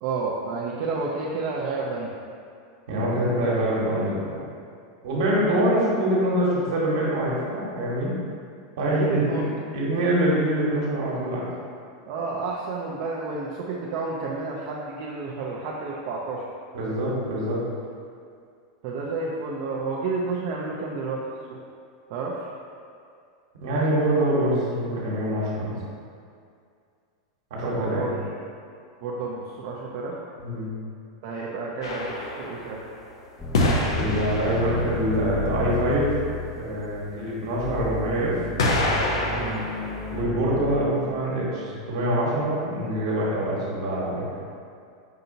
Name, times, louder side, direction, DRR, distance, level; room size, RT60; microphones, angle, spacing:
voice 1, 0.0-2.1 8.9-9.4 12.1-16.5 18.8-21.2 21.5-21.6 22.1-22.5 27.6-28.2 29.0-30.1 31.2-32.8 39.3-39.7, right 4 dB, 60° right, -4 dB, 0.5 m, -30 dB
voice 2, 2.9-4.3 5.0-8.1 8.8-9.5 9.7-11.4 16.7-17.6 23.6-25.8 27.5-28.1 30.4-30.7 33.9-36.1 36.5-38.4 40.1-44.3, right 1 dB, 75° right, -6 dB, 1.2 m, -24 dB
sound 1, 31.8-33.0 33.5-35.1 37.4-37.5 38.6-40.2, left 2 dB, 90° left, 0.5 m, -26 dB
sound 2, 33.4-40.9, left 3 dB, 10° left, 0.4 m, -33 dB
5.5 x 2.8 x 2.7 m, 2.3 s
hypercardioid pair, 120°, 2 cm